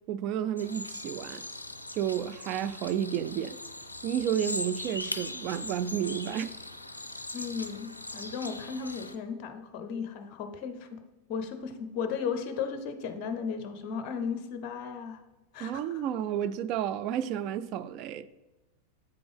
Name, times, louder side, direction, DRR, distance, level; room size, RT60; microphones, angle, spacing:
voice 1, 0.1-1.4 1.9-3.6 4.0-6.5 15.6-18.2, right 10 dB, 40° right, 0.3 m, -31 dB
sound 1, 0.6-9.2, left 2 dB, 85° left, 0.4 m, -40 dB
voice 2, 7.3-11.0 11.3-15.2 15.5-16.0, left 6 dB, 40° left, 0.6 m, -35 dB
7.8 x 5.1 x 3.3 m
figure-of-eight pair, 90°, 0 cm